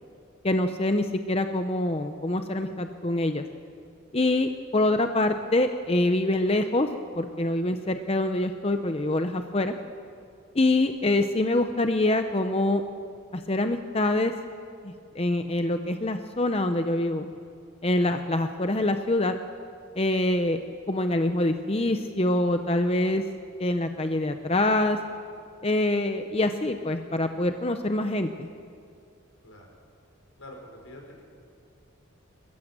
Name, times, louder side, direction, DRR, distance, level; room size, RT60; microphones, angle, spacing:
voice 1, 0.4-3.4 4.1-6.9 7.1-9.7 10.5-12.8 13.3-14.3 14.8-17.3 17.8-19.3 20.0-20.6 20.9-23.2 23.6-25.0 25.6-28.5, left 1 dB, 30° left, 7 dB, 0.7 m, -25 dB
voice 2, 30.4-31.2, left 1 dB, 85° left, 1 dB, 5.3 m, -45 dB
29.0 x 15.0 x 7.5 m, 2.3 s
head